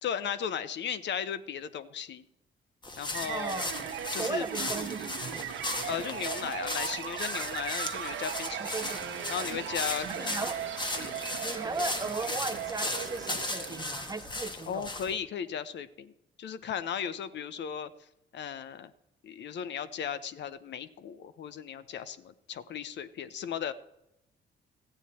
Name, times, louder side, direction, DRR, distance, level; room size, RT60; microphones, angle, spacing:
voice 1, 0.0-2.2 3.0-3.7 4.1-4.5 5.9-8.7 9.3-10.4 10.9-11.2 14.7-16.1 16.4-17.9 18.3-18.9 19.2-23.7, left 8 dB, 65° left, 14 dB, 0.7 m, -36 dB
sound 1, 2.8-15.1, left 2 dB, 25° left, 1.3 m, -37 dB
sound 2, 3.1-14.3, right 9 dB, 80° right, 1.0 m, -38 dB
voice 2, 3.3-3.8 4.2-5.4 8.6-9.0 10.2-10.6 11.4-14.9, right 3 dB, 20° right, 12 dB, 0.7 m, -36 dB
15.0 x 9.0 x 4.2 m, 0.86 s
cardioid pair, 90°, 20 cm